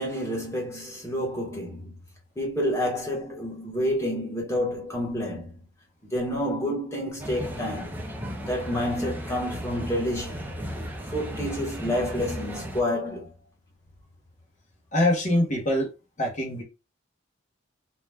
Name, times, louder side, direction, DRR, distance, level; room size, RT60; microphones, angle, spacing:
voice 1, 0.0-2.0 2.4-5.6 6.1-7.9 8.4-10.5 11.1-13.3, equal, 15° left, 1.1 m, -29 dB
sound 1, 7.2-12.8, equal, 10° right, 0.5 m, -35 dB
voice 2, 14.9-15.9 16.2-16.6, left 1 dB, 40° left, 1.1 m, -23 dB
2.9 x 2.2 x 3.4 m
head